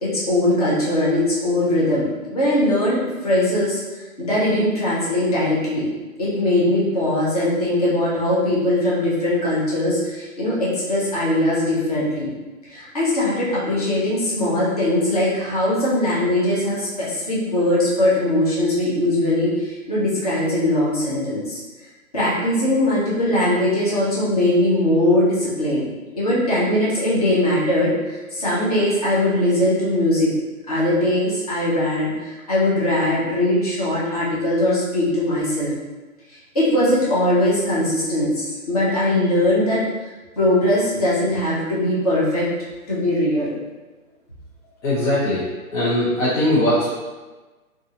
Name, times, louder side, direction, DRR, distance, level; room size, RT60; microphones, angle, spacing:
voice 1, 0.0-3.8 4.2-5.9 6.2-12.3 12.7-21.6 22.1-25.9 26.1-30.3 30.7-35.7 36.3-39.8 40.4-42.5 42.9-43.5, left 1 dB, 30° left, -7 dB, 0.5 m, -20 dB
voice 2, 44.8-46.9, left 1 dB, 65° left, -7 dB, 0.7 m, -20 dB
2.6 x 2.3 x 2.5 m, 1.2 s
hypercardioid pair, 155°, 44 cm